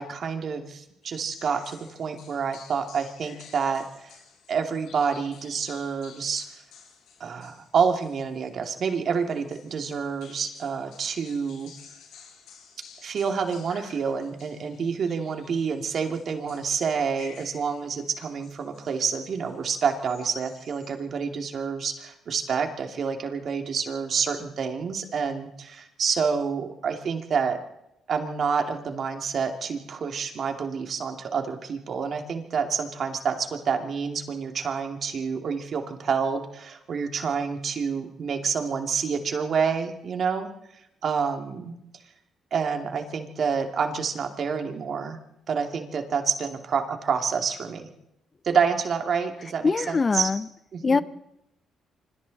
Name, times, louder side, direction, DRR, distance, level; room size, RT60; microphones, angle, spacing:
voice 1, 0.0-4.2 4.5-6.4 7.2-11.7 13.0-27.6 28.1-40.5 41.0-41.8 42.5-45.2 45.5-47.9 48.4-50.3 50.7-51.0, right 6 dB, 55° right, 4 dB, 2.6 m, -28 dB
sound 1, 1.0-20.9, left 6 dB, 85° left, 6.1 m, -53 dB
voice 2, 49.6-50.4 50.8-51.0, left 4 dB, 30° left, 16 dB, 0.7 m, -22 dB
26.5 x 25.0 x 4.2 m, 0.84 s
cardioid pair, 90°, 0 cm